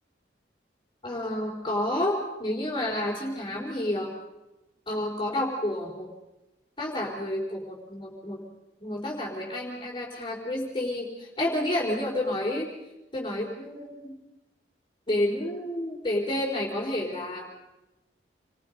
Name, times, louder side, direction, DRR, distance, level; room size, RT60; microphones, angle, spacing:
voice 1, 1.0-4.1 4.9-6.1 6.8-8.4 8.8-12.7 13.1-14.1 15.1-17.5, left 1 dB, 25° left, -2 dB, 4.3 m, -30 dB
29.0 x 22.0 x 5.4 m, 0.99 s
head